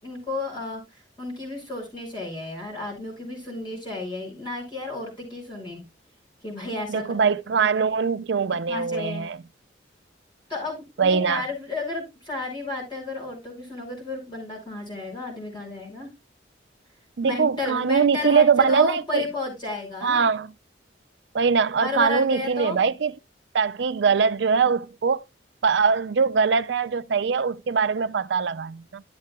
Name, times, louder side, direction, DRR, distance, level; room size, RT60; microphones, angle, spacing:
voice 1, 0.0-0.8 1.2-5.8 6.4-7.1 8.7-9.3 10.5-16.1 17.2-20.3 21.8-22.8, left 2 dB, 25° left, 5.6 m, -32 dB
voice 2, 6.9-9.4 11.0-11.4 17.2-19.3 20.0-20.5 21.3-23.1 23.5-25.2 25.6-29.0, right 5 dB, 75° right, 0.5 m, -22 dB
13.0 x 7.4 x 2.3 m
head